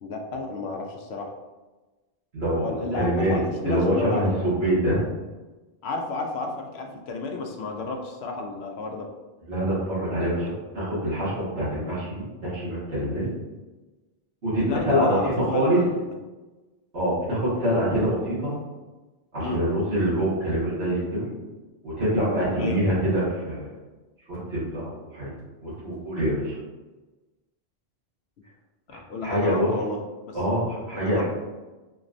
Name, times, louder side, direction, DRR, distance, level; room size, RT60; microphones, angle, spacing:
voice 1, 0.0-1.3 2.5-4.5 5.8-9.1 14.6-16.2 19.4-19.6 22.6-22.8 28.9-30.0 30.3-30.4 30.9-31.2, left 3 dB, 80° left, 2 dB, 0.9 m, -32 dB
voice 2, 2.3-3.4 3.6-5.0 9.5-13.3 14.4-15.8 16.9-18.5 19.3-21.3 21.8-23.7 24.3-25.3 25.6-26.6 29.2-29.7 30.3-31.2, equal, 75° right, -10 dB, 2.0 m, -25 dB
4.3 x 3.1 x 2.5 m, 1.2 s
omnidirectional pair, 1.1 m